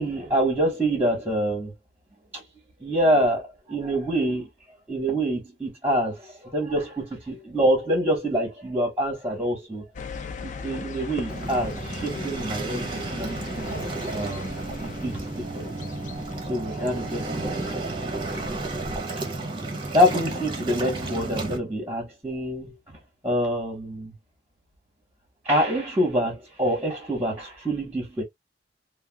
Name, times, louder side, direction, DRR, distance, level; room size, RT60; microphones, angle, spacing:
voice 1, 0.0-1.7 2.3-2.4 2.8-4.5 4.9-9.8 10.4-12.8 13.1-13.7 14.1-14.5 14.8-15.9 16.5-17.3 19.9-22.7 23.2-24.1 25.4-28.2, equal, 10° right, 1.1 m, -26 dB
sound 1, 10.0-19.0, left 4 dB, 45° left, 0.4 m, -39 dB
Waves surf, 11.3-21.6, right 2 dB, 30° right, 0.7 m, -32 dB
2.4 x 2.2 x 3.2 m
head